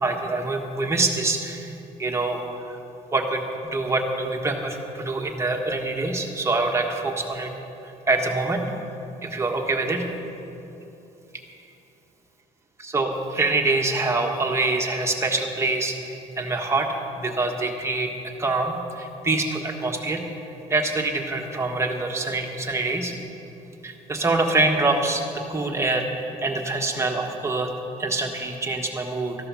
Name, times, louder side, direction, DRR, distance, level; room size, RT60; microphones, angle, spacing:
voice 1, 0.0-2.4 2.7-2.8 3.1-7.5 7.8-8.6 9.2-10.1 12.8-18.1 18.4-20.2 20.7-23.1 23.8-27.7 28.0-29.4, right 2 dB, 20° right, 2 dB, 1.5 m, -25 dB
14.5 x 11.5 x 6.2 m, 2.9 s
cardioid pair, 120°, 15 cm